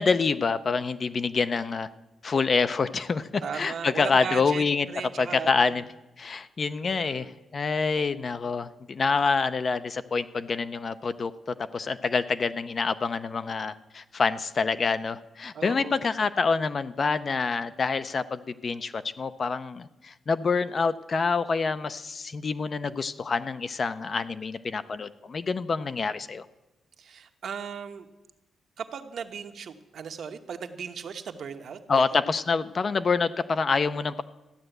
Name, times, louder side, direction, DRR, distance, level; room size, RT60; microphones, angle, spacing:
voice 1, 0.0-1.9 2.2-4.9 5.2-5.8 6.2-26.5 31.9-34.2, left 4 dB, 35° left, 12 dB, 0.5 m, -27 dB
voice 2, 3.4-5.8 6.8-7.3 15.5-16.1 27.0-28.1 28.8-32.0, right 6 dB, 60° right, 7 dB, 1.0 m, -37 dB
14.0 x 9.9 x 7.9 m, 1.0 s
wide cardioid pair, 160°, 0 cm